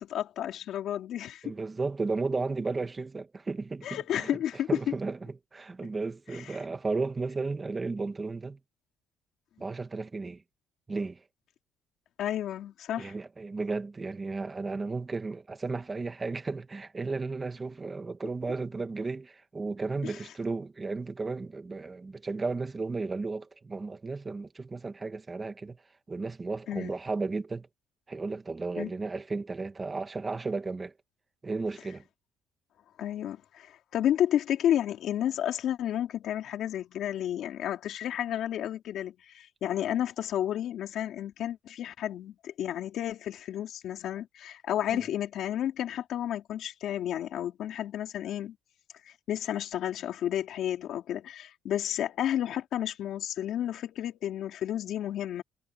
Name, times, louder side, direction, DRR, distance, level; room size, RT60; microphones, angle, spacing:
voice 1, 0.0-1.5 3.8-4.9 6.3-6.6 12.2-13.1 20.0-20.1 26.7-26.9 28.8-28.9 33.0-48.6 49.3-55.4, left 11 dB, 55° left, 4.3 m, -31 dB
voice 2, 1.4-4.3 4.7-8.6 9.6-10.4 10.9-11.2 13.0-25.8 26.1-27.7 28.1-30.9 31.4-32.0 44.9-45.0, right 3 dB, 15° right, 1.6 m, -34 dB
cardioid pair, 165°, 0 cm